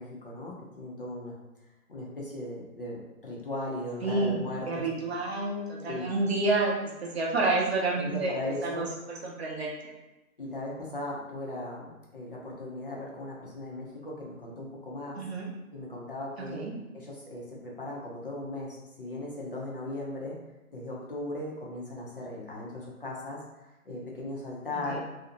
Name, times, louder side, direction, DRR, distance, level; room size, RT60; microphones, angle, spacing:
voice 1, 0.0-1.4 1.9-5.0 5.8-6.1 8.0-8.8 10.4-15.2 15.7-16.6 16.9-20.4 20.7-23.4 23.8-25.0, left 1 dB, 40° left, -4 dB, 0.5 m, -38 dB
voice 2, 4.0-9.9 15.2-15.5 16.5-16.7 24.9-25.0, right 2 dB, 45° right, -3 dB, 0.6 m, -29 dB
2.5 x 2.0 x 2.7 m, 1.0 s
hypercardioid pair, 160°, 43 cm